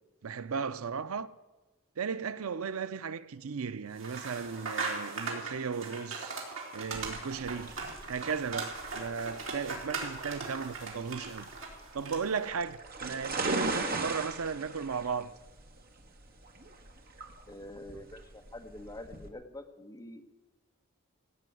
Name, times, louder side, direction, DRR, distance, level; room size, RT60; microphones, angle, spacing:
voice 1, 0.2-1.3 2.0-6.4 6.7-7.8 8.1-11.5 11.9-15.3, right 5 dB, 80° right, 0.6 m, -36 dB
sound 1, 4.0-12.4, right 3 dB, 65° right, 3.8 m, -39 dB
sound 2, 6.9-19.3, right 3 dB, 45° right, 1.7 m, -39 dB
voice 2, 17.5-20.3, left 1 dB, 15° left, 1.1 m, -46 dB
17.0 x 8.4 x 9.2 m
head